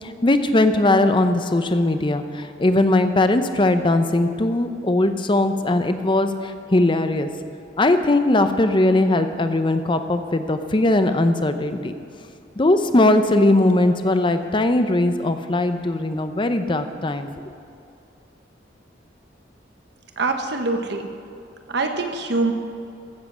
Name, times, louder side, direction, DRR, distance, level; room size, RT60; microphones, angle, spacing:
voice 1, 0.0-7.3 7.8-11.9 12.6-17.4, left 2 dB, 25° left, 9 dB, 0.6 m, -19 dB
voice 2, 20.2-21.1 21.7-22.5, right 3 dB, 65° right, 5 dB, 1.1 m, -24 dB
15.0 x 7.5 x 6.2 m, 2.6 s
head